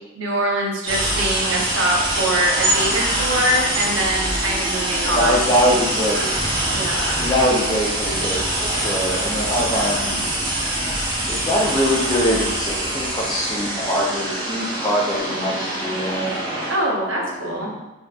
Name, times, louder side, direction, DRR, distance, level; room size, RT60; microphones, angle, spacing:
voice 1, 0.2-5.4 6.7-7.3 16.7-17.7, right 1 dB, 85° right, -2 dB, 0.7 m, -23 dB
sound 1, 0.9-16.7, right 1 dB, 25° right, 0.9 m, -24 dB
voice 2, 5.1-6.3 7.1-10.2 11.3-16.3 17.0-17.8, equal, 20° left, -3 dB, 0.5 m, -23 dB
3.5 x 2.6 x 2.3 m, 1.0 s
head